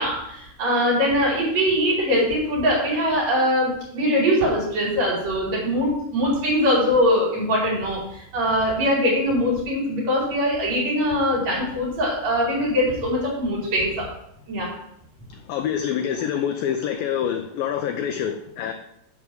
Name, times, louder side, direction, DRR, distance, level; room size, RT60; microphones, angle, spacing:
voice 1, 0.0-14.1 14.5-14.7, equal, 40° right, -5 dB, 5.3 m, -22 dB
voice 2, 15.3-18.7, left 8 dB, 80° left, 6 dB, 2.0 m, -26 dB
11.0 x 5.0 x 7.5 m, 0.76 s
omnidirectional pair, 4.9 m